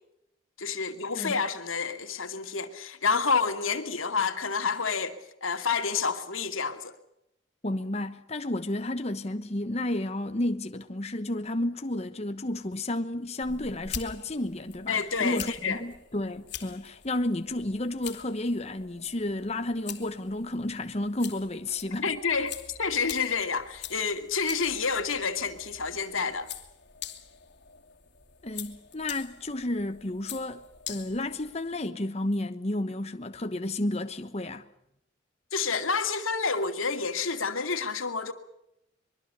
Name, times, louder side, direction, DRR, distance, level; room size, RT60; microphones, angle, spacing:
voice 1, 0.6-6.9 14.9-15.8 22.0-26.5 35.5-38.3, left 5 dB, 90° left, 2.6 m, -29 dB
voice 2, 7.6-22.5 28.4-30.6 30.9-34.7, left 1 dB, 30° left, 1.0 m, -32 dB
sound 1, 13.4-31.8, left 9 dB, 55° left, 2.6 m, -44 dB
24.5 x 23.0 x 6.9 m
head